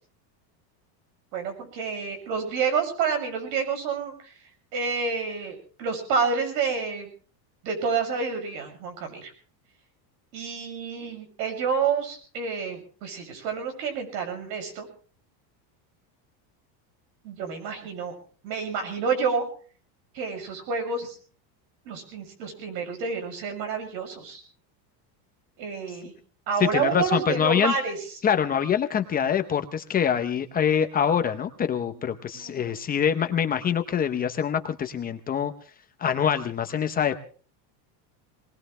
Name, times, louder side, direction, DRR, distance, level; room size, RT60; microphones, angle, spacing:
voice 1, 1.3-4.3 4.7-7.1 7.6-9.3 10.3-14.9 17.2-18.1 18.4-19.4 20.1-21.1 21.8-24.4 25.6-26.1 26.5-28.0 30.1-30.2 31.9-32.0 32.3-32.7, right 5 dB, 85° right, 5 dB, 6.6 m, -29 dB
voice 2, 26.6-27.7 28.2-35.5 36.0-37.2, left 8 dB, 20° left, 8 dB, 0.7 m, -25 dB
22.5 x 20.0 x 3.3 m, 0.42 s
cardioid pair, 165°, 49 cm